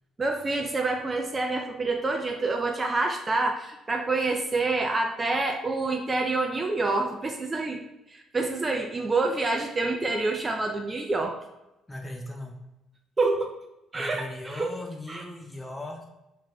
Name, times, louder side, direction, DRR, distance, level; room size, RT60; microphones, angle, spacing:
voice 1, 0.2-11.4 13.2-13.5 13.9-14.7 15.1-15.2, right 3 dB, 30° right, 3 dB, 0.3 m, -27 dB
voice 2, 11.9-12.6 13.9-16.1, left 1 dB, 15° left, 2 dB, 0.7 m, -38 dB
2.5 x 2.2 x 3.4 m, 0.94 s
hypercardioid pair, 50°, 0 cm